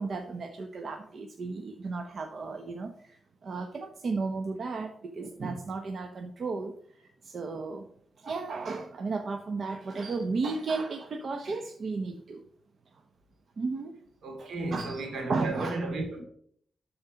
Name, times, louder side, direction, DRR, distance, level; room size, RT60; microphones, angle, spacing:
voice 1, 0.0-7.8 8.2-12.4 13.6-14.0 14.4-15.0 15.3-15.8, right 4 dB, 65° right, 1.0 m, -34 dB
voice 2, 14.2-16.2, right 2 dB, 85° right, 2.5 m, -33 dB
12.5 x 4.3 x 5.1 m
cardioid pair, 65°, 0 cm